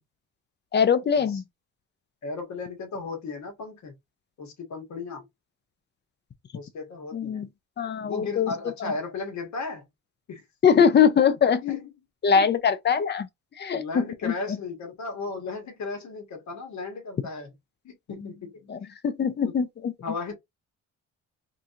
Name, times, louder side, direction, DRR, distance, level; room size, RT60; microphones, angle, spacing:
voice 1, 0.7-1.4 7.1-7.5 7.8-8.5 8.8-8.9 10.6-11.6 12.2-13.3 13.6-14.6 18.7-19.9, left 7 dB, 35° left, 0.5 m, -22 dB
voice 2, 2.2-3.9 4.4-5.2 6.5-7.4 8.0-9.8 10.3-10.4 11.6-11.9 12.3-12.5 13.7-17.5 17.8-18.9 19.4-19.5 20.0-20.3, left 4 dB, 70° left, 1.6 m, -35 dB
3.8 x 2.8 x 2.5 m
cardioid pair, 90°, 30 cm